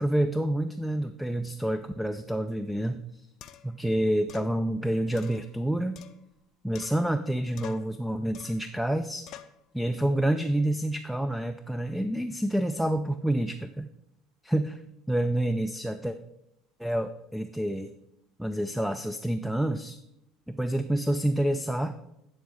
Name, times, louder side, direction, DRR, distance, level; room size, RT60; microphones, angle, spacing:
voice 1, 0.0-3.3 3.6-6.0 6.6-9.3 9.7-13.9 14.4-14.8 15.1-16.2 16.8-17.9 18.4-20.0 20.5-22.0, right 1 dB, ahead, 9 dB, 0.5 m, -28 dB
sound 1, 2.7-2.8 3.4-3.8 4.3-4.5 5.2-6.4 6.7-7.3 7.6-8.0 8.3-8.7 9.3-9.6, left 10 dB, 50° left, 0.6 m, -47 dB
10.0 x 4.1 x 6.3 m, 0.83 s
figure-of-eight pair, 65°, 0 cm